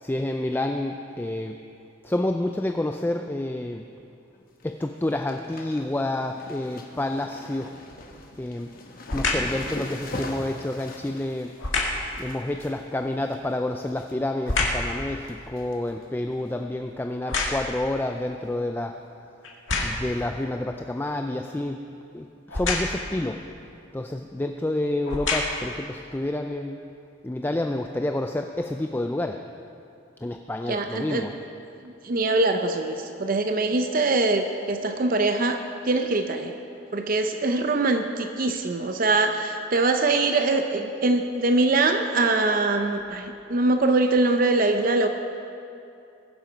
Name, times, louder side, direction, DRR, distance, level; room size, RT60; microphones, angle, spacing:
voice 1, 0.0-1.6 2.0-3.8 4.6-7.7 8.4-8.7 9.1-11.5 12.2-19.0 19.8-21.8 22.1-23.4 23.9-26.9 27.2-29.4 30.2-31.3, left 1 dB, 10° left, 5 dB, 0.3 m, -29 dB
sound 1, 4.3-4.6 4.9-14.1 14.5-14.9 15.2-16.0 16.4-16.5 17.4-17.7 18.0-18.1 18.4-18.5 20.1-20.2 21.0-21.1, left 2 dB, 45° left, 1.2 m, -42 dB
sound 2, 7.9-8.3 9.1-9.6 11.6-12.1 13.5-14.9 15.4-17.9 18.6-18.7 19.4-20.2 22.5-23.1 24.1-24.3 24.9-25.8 26.4-26.5, left 3 dB, 75° left, 1.9 m, -28 dB
voice 2, 30.7-31.3 31.8-35.6 35.8-36.5 36.9-45.1, right 2 dB, 45° right, 6 dB, 0.6 m, -23 dB
21.5 x 7.4 x 5.2 m, 2.6 s
head